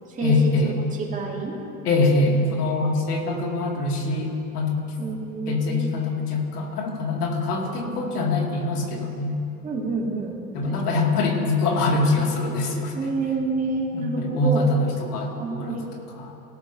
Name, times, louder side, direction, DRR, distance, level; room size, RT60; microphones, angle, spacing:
voice 1, 0.2-0.7 1.8-4.8 5.5-9.4 10.5-12.9 13.9-16.3, left 3 dB, 85° left, 0 dB, 2.3 m, -24 dB
voice 2, 1.1-1.6 2.9-3.0 5.0-5.9 7.7-8.1 9.6-11.0 12.9-14.7 15.4-15.8, right 3 dB, 15° right, -2 dB, 2.1 m, -29 dB
18.0 x 12.0 x 2.7 m, 2.7 s
hypercardioid pair, 120°, 45 cm